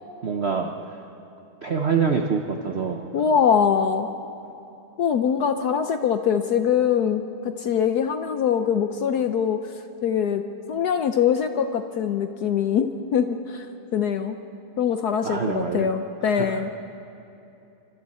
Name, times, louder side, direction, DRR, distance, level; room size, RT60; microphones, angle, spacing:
voice 1, 0.2-1.0 1.6-3.0 15.2-15.9 16.2-16.6, right 5 dB, 60° right, 4 dB, 0.6 m, -26 dB
voice 2, 3.1-4.1 5.0-9.7 10.0-10.4 10.7-13.7 13.9-14.4 14.8-16.7, left 7 dB, 65° left, 8 dB, 1.0 m, -23 dB
27.5 x 24.5 x 4.3 m, 2.8 s
omnidirectional pair, 2.3 m